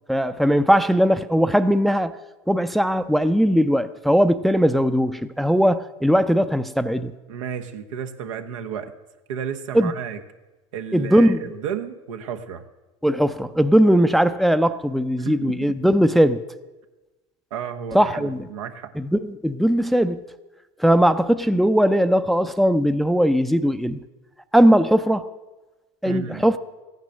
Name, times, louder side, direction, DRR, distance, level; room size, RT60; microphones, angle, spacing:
voice 1, 0.1-2.1 2.5-7.1 9.7-9.9 10.9-11.4 13.0-16.4 17.9-18.5 19.0-20.2 20.8-24.0 24.5-25.3 26.0-26.6, equal, ahead, 0.5 m, -19 dB
voice 2, 7.3-8.9 9.3-10.2 10.7-12.6 15.2-15.9 17.5-18.9 26.0-26.5, right 8 dB, 80° right, 1.1 m, -32 dB
15.0 x 9.5 x 6.4 m
hypercardioid pair, 90°, 16 cm